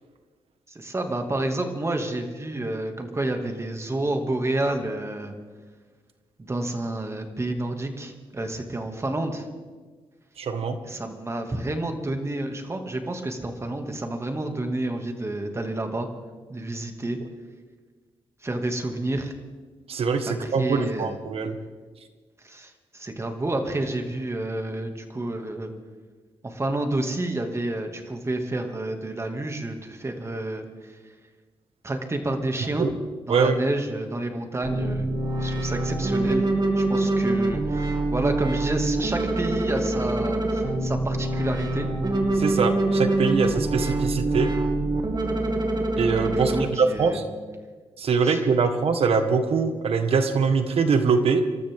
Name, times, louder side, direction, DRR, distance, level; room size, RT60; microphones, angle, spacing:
voice 1, 0.7-5.3 6.4-9.5 10.8-16.1 16.5-17.2 18.4-19.3 20.3-21.1 22.4-25.7 26.4-31.0 31.8-32.9 33.3-35.1 35.4-36.5 36.8-41.9 46.3-47.2 48.2-48.4, right 2 dB, 25° right, 4 dB, 2.3 m, -29 dB
voice 2, 10.4-10.8 19.9-21.6 32.8-32.9 33.3-33.6 42.3-44.5 46.0-47.2 48.0-51.4, right 5 dB, 70° right, 7 dB, 1.7 m, -23 dB
sound 1, 34.6-46.6, right 2 dB, 45° right, 2.7 m, -25 dB
27.0 x 13.0 x 3.7 m, 1.4 s
cardioid pair, 75°, 10 cm